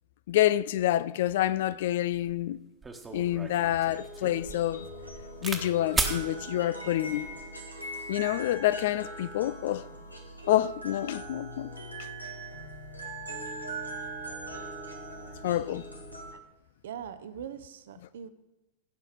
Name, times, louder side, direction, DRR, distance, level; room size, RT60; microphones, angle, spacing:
voice 1, 0.3-2.6 3.1-4.9 5.4-7.3 8.1-9.9 10.5-11.7 12.0-12.1 15.4-15.9, left 13 dB, 55° left, 0.4 m, -27 dB
sound 1, 2.3-2.4 2.8-5.6 5.9-6.2 7.1-7.4, right 4 dB, 15° right, 1.3 m, -34 dB
sound 2, 3.1-16.3, right 2 dB, 90° left, 1.8 m, -41 dB
voice 2, 16.8-18.3, right 8 dB, 60° right, 0.8 m, -41 dB
16.0 x 5.7 x 6.4 m
figure-of-eight pair, 90°, 0 cm